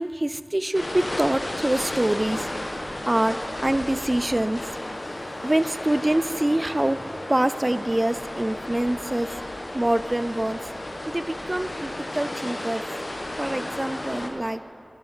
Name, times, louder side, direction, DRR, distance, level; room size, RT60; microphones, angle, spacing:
voice 1, 0.0-2.4 3.1-4.8 5.4-7.0 7.3-9.3 9.7-10.6 11.1-12.8 13.4-14.6, right 1 dB, 30° right, 14 dB, 0.3 m, -25 dB
sound 1, 0.7-14.3, left 1 dB, 60° left, 1.3 m, -33 dB
13.0 x 10.5 x 5.6 m, 2.5 s
wide cardioid pair, 60°, 0 cm